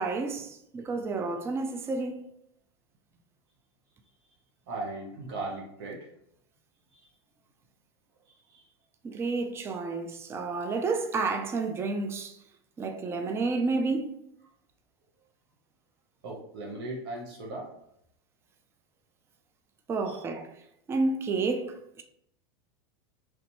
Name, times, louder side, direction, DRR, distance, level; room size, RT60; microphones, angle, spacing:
voice 1, 0.0-2.2 9.0-12.3 12.8-14.2 19.9-20.5 20.9-22.0, right 3 dB, 20° right, 0.4 m, -30 dB
voice 2, 4.7-6.1 6.9-7.0 8.5-8.6 16.2-17.7 20.1-20.2, right 2 dB, 75° right, 0.9 m, -37 dB
3.3 x 2.6 x 2.9 m
supercardioid pair, 120°, 13 cm